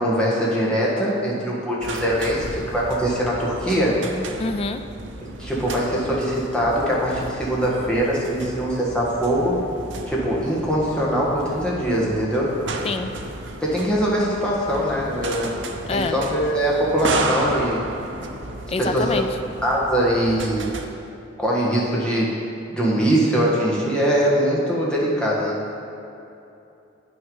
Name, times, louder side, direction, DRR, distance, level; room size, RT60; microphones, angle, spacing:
voice 1, 0.0-4.0 5.4-9.6 10.1-12.6 13.6-15.6 15.9-17.9 18.8-19.2 19.6-20.7 21.4-22.4 22.7-25.6, equal, 5° left, -6 dB, 1.5 m, -22 dB
sound 1, 1.8-20.9, right 2 dB, 75° right, 0.7 m, -33 dB
voice 2, 4.4-4.8 12.8-13.1 15.9-16.2 18.7-19.3, left 3 dB, 30° left, 8 dB, 0.4 m, -25 dB
8.8 x 6.1 x 5.5 m, 2.8 s
head